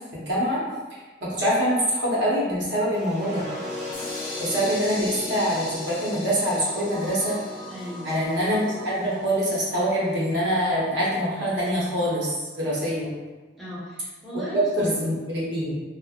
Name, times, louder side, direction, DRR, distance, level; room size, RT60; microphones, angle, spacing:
voice 1, 0.1-0.6 1.2-3.5 4.4-7.4 8.0-13.1 14.5-15.7, equal, 65° right, -7 dB, 0.9 m, -24 dB
sound 1, 2.9-8.9, left 1 dB, 35° right, 0.9 m, -37 dB
sound 2, 3.9-9.7, left 2 dB, 55° left, 0.7 m, -39 dB
voice 2, 7.7-8.3 13.6-14.9, equal, ahead, -10 dB, 0.9 m, -37 dB
3.3 x 2.0 x 2.3 m, 1.3 s
head